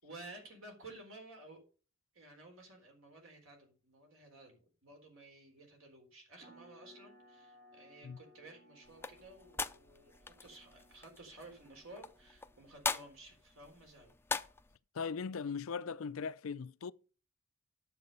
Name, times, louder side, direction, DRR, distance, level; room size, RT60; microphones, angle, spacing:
voice 1, 0.0-1.7 2.1-14.1, right 2 dB, 75° right, 3.9 m, -54 dB
sound 1, 6.4-12.6, left 1 dB, 45° right, 1.4 m, -63 dB
sound 2, 8.9-14.8, left 4 dB, 10° left, 0.5 m, -42 dB
voice 2, 14.9-16.9, left 5 dB, 80° left, 0.5 m, -39 dB
9.7 x 7.4 x 5.4 m
head